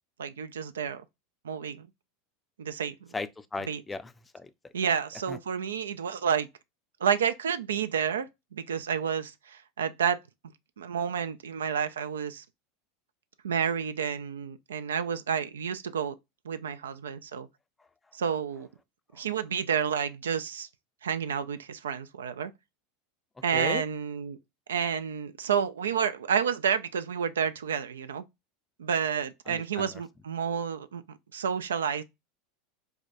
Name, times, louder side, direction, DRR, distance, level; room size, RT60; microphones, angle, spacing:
voice 1, 0.2-1.0 1.4-1.9 2.6-3.1 3.6-3.8 4.7-6.5 7.0-10.2 10.8-12.4 13.4-16.1 16.4-17.5 18.1-18.7 19.1-20.7 21.0-22.5 23.4-24.4 24.7-28.2 28.8-32.0, right 7 dB, 85° right, 0.3 m, -30 dB
voice 2, 3.1-4.5 5.3-5.4 23.5-23.8 29.5-29.9, left 3 dB, 15° left, 0.4 m, -36 dB
4.7 x 2.2 x 2.5 m
hypercardioid pair, 90°, 0 cm